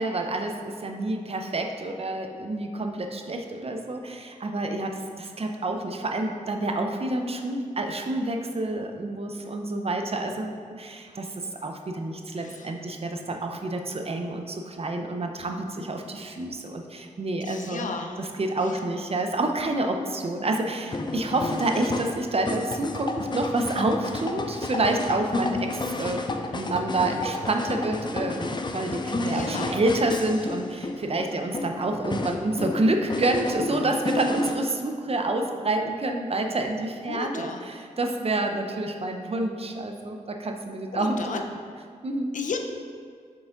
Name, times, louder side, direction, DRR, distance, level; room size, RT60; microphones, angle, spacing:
voice 1, 0.0-11.3 11.6-17.9 18.2-25.7 26.0-26.2 26.5-41.4 42.0-42.4, right 2 dB, 45° right, 4 dB, 0.7 m, -28 dB
voice 2, 12.4-12.7 17.4-18.2 18.6-18.8 29.3-29.8 37.1-37.6 40.9-41.4 42.3-42.6, left 4 dB, 70° left, 4 dB, 0.7 m, -34 dB
sound 1, 20.9-34.5, left 2 dB, 35° left, 0.6 m, -31 dB
7.1 x 4.8 x 3.8 m, 2.1 s
cardioid pair, 55°, 14 cm